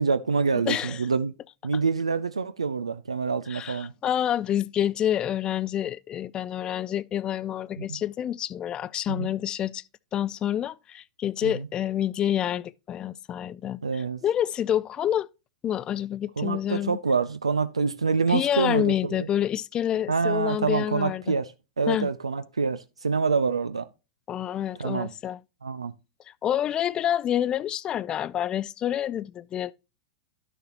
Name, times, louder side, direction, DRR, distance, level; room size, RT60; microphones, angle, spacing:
voice 1, 0.0-1.3 1.6-3.9 7.8-8.0 9.1-9.3 11.4-11.7 13.8-14.2 16.4-19.3 20.1-21.5 21.8-23.9 24.8-25.1 25.6-25.9, right 4 dB, 90° right, 0.4 m, -26 dB
voice 2, 0.7-1.1 3.5-9.8 10.1-15.3 15.6-17.0 18.3-21.3 21.9-22.1 24.3-25.4 26.3-29.7, left 10 dB, 30° left, 0.3 m, -28 dB
12.0 x 6.6 x 2.9 m
hypercardioid pair, 100°, 3 cm